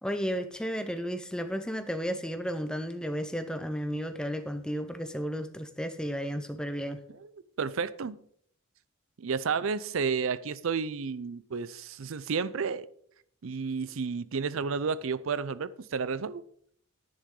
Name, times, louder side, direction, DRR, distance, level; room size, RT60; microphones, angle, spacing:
voice 1, 0.0-7.0, equal, 5° left, 0.7 m, -33 dB
voice 2, 7.6-8.2 9.2-12.9 13.4-16.4, right 5 dB, 70° right, 0.5 m, -31 dB
10.5 x 10.5 x 3.8 m
head